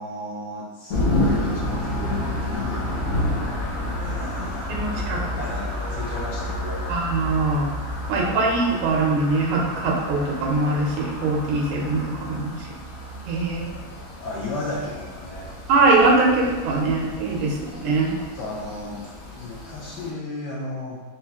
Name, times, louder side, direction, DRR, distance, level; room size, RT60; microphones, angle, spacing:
voice 1, 0.0-3.1 4.0-7.0 8.1-8.4 12.2-12.3 14.2-15.5 18.2-21.0, left 2 dB, 75° left, -3 dB, 1.0 m, -34 dB
sound 1, 0.9-20.1, left 1 dB, 50° left, 1.2 m, -30 dB
voice 2, 4.7-5.4 6.9-7.7 8.1-12.5 13.3-13.7 15.7-18.1, right 3 dB, 85° right, -1 dB, 1.7 m, -22 dB
4.3 x 3.0 x 3.5 m, 1.3 s
omnidirectional pair, 2.3 m